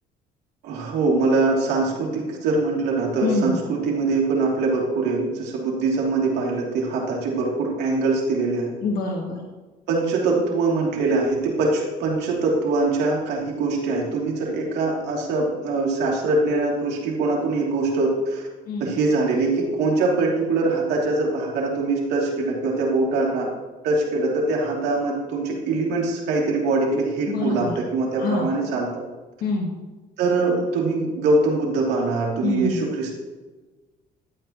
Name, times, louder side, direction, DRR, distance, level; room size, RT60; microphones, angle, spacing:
voice 1, 0.6-8.7 9.9-18.4 18.8-23.5 23.8-29.0 30.2-33.2, right 3 dB, 85° right, -2 dB, 2.9 m, -23 dB
voice 2, 3.2-3.6 8.8-9.4 18.6-18.9 27.2-27.7 28.2-28.5 29.4-29.7 32.4-32.9, left 3 dB, 60° left, 0 dB, 1.6 m, -25 dB
12.0 x 9.0 x 3.0 m, 1.3 s
cardioid pair, 110°, 17 cm